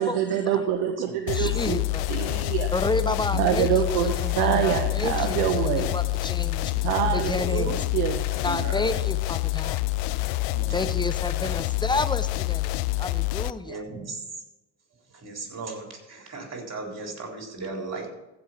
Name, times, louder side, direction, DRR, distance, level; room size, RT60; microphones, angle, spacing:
voice 1, 0.0-1.8 2.1-2.7 3.3-5.9 6.8-8.6, right 9 dB, 85° right, 6 dB, 0.9 m, -26 dB
sound 1, 1.3-13.5, left 18 dB, 80° left, 0.5 m, -27 dB
voice 2, 1.3-2.0 2.7-3.7 4.0-6.7 7.1-7.7 8.4-9.8 10.7-12.7 13.0-13.8, left 2 dB, 10° left, 12 dB, 0.9 m, -30 dB
voice 3, 6.7-7.6 8.6-9.0 10.3-10.8 13.7-14.2 15.1-18.1, right 3 dB, 35° right, 1 dB, 4.1 m, -37 dB
15.0 x 5.5 x 5.9 m, 1.0 s
hypercardioid pair, 60°, 43 cm